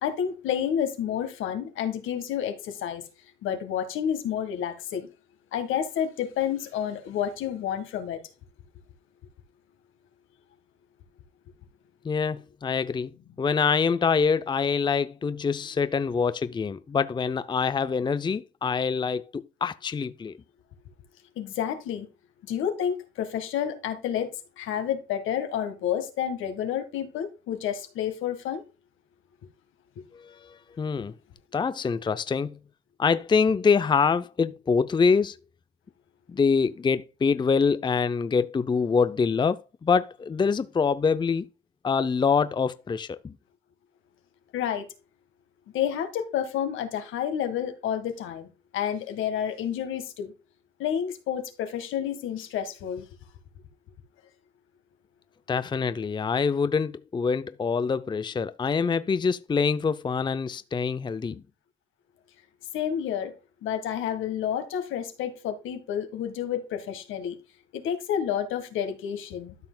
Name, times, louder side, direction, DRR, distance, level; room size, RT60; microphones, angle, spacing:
voice 1, 0.0-3.0 3.4-5.1 5.5-8.2 21.4-22.1 22.4-24.3 24.6-28.6 44.5-44.9 45.7-50.3 50.8-53.1 62.7-63.3 63.6-67.4 67.7-69.6, left 9 dB, 85° left, 1.5 m, -30 dB
voice 2, 12.0-20.4 30.1-31.2 31.5-32.6 33.0-35.4 36.3-41.5 41.8-43.4 55.5-61.4, left 5 dB, 25° left, 0.5 m, -25 dB
13.0 x 5.5 x 2.2 m
cardioid pair, 90°, 20 cm